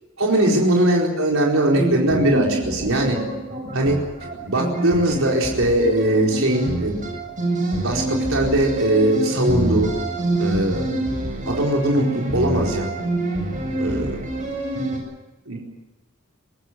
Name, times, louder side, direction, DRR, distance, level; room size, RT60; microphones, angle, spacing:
voice 1, 0.2-3.2 3.7-4.0 4.4-7.0 7.8-9.9 10.4-10.8 11.5-12.9 13.8-14.1 15.5-15.6, right 1 dB, 85° right, -1 dB, 4.5 m, -20 dB
sound 1, 1.7-15.0, right 1 dB, 40° right, 7.6 m, -26 dB
24.5 x 19.0 x 7.6 m, 1.1 s
head